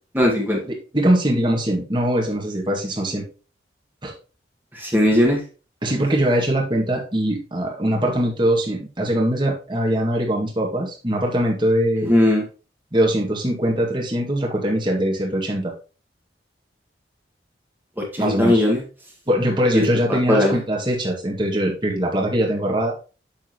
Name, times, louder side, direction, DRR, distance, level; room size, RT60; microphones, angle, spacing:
voice 1, 0.1-0.6 4.7-5.4 12.0-12.4 18.0-18.8 19.7-19.8 20.1-20.5, left 1 dB, 10° right, -1 dB, 1.8 m, -18 dB
voice 2, 0.9-3.2 4.0-4.1 5.8-12.1 12.9-15.7 18.2-18.6 19.3-22.9, right 1 dB, 25° right, 0 dB, 2.0 m, -22 dB
7.3 x 6.5 x 3.0 m, 0.34 s
head